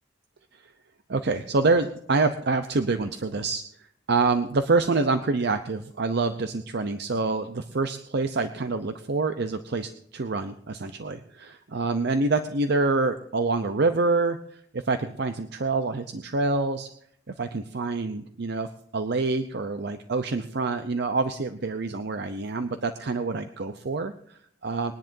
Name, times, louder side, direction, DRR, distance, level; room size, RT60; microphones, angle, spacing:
voice 1, 1.1-3.6 4.1-16.9 17.3-18.7 18.9-24.9, right 3 dB, 60° right, 8 dB, 0.7 m, -26 dB
22.0 x 10.5 x 2.7 m, 0.69 s
head